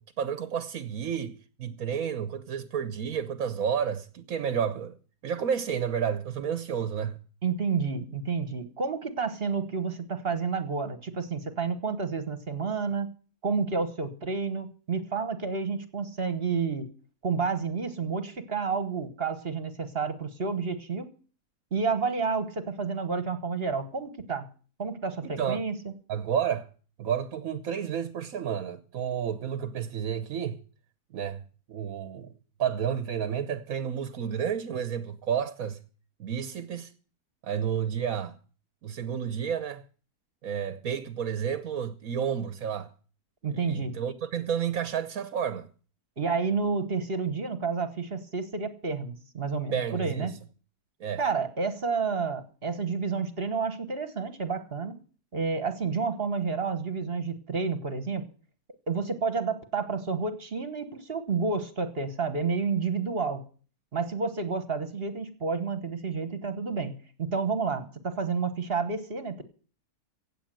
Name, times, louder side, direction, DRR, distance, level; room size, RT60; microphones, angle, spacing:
voice 1, 0.0-5.0 5.2-7.2 25.2-25.6 26.1-26.7 27.0-30.6 31.1-31.4 31.7-32.3 32.6-35.8 36.2-36.9 37.4-38.4 38.8-39.8 40.4-42.9 43.5-45.7 49.7-50.3 51.0-51.2, right 8 dB, 65° right, 1.3 m, -31 dB
voice 2, 7.4-13.1 13.4-16.9 17.2-21.1 21.7-24.5 24.8-25.9 43.4-44.0 46.2-50.3 51.2-55.0 55.3-58.3 58.9-63.4 63.9-69.4, right 5 dB, 40° right, 1.4 m, -30 dB
16.5 x 8.0 x 7.7 m
omnidirectional pair, 1.6 m